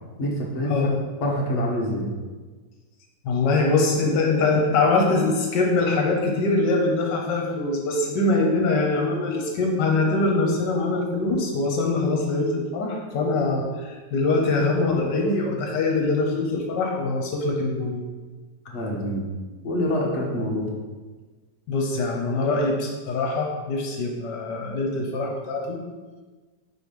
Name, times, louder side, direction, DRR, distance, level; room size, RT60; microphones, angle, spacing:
voice 1, 0.2-0.7 1.2-2.1 18.6-19.2 19.6-20.7, equal, 45° left, -2 dB, 1.3 m, -26 dB
voice 2, 3.2-18.0 21.7-25.8, left 3 dB, 75° left, 1 dB, 1.5 m, -23 dB
4.8 x 4.7 x 5.2 m, 1.3 s
omnidirectional pair, 1.9 m